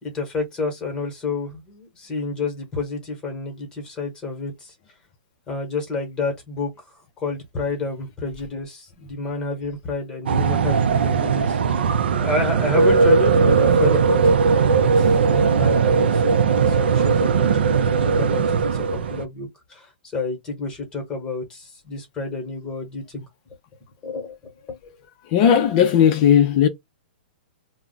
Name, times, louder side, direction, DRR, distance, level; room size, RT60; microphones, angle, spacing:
voice 1, 0.0-4.7 5.5-11.8 12.2-23.3 24.0-24.8, left 3 dB, 10° left, 1.0 m, -30 dB
sound 1, 10.3-19.2, right 5 dB, 75° right, 0.4 m, -18 dB
voice 2, 25.2-26.7, left 9 dB, 30° left, 0.4 m, -16 dB
2.3 x 2.0 x 3.7 m
hypercardioid pair, 160°, 6 cm